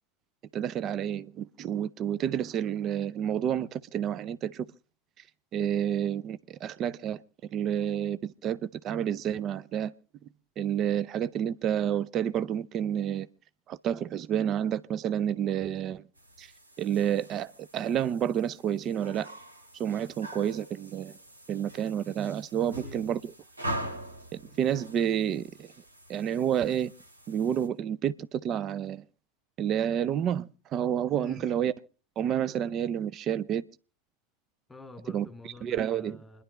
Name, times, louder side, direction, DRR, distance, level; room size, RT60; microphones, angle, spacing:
voice 1, 0.5-4.7 5.5-7.2 7.5-9.9 10.6-13.3 13.7-16.0 16.4-16.5 16.8-19.3 19.8-21.1 21.5-23.3 24.3-25.7 26.1-26.9 27.3-29.0 29.6-31.7 32.2-33.6 35.1-35.3 35.6-36.2, right 9 dB, 40° right, 0.6 m, -29 dB
sound 1, 16.1-27.7, right 1 dB, 90° right, 2.7 m, -43 dB
voice 2, 22.6-23.0 31.1-31.4 34.7-36.4, left 2 dB, 10° left, 3.0 m, -47 dB
28.5 x 11.0 x 3.4 m
figure-of-eight pair, 80°, 0 cm